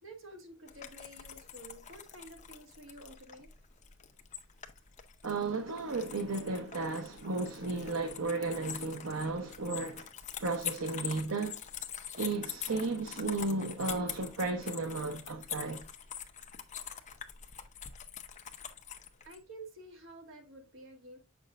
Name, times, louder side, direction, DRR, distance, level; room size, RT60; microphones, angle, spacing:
voice 1, 0.0-3.5 19.2-21.2, right 1 dB, 65° right, 1.9 m, -50 dB
sound 1, 0.7-19.4, left 9 dB, 35° left, 0.7 m, -45 dB
voice 2, 5.2-10.1 10.4-11.6 12.1-15.9, right 3 dB, 85° right, 0.8 m, -34 dB
7.7 x 6.1 x 2.4 m
head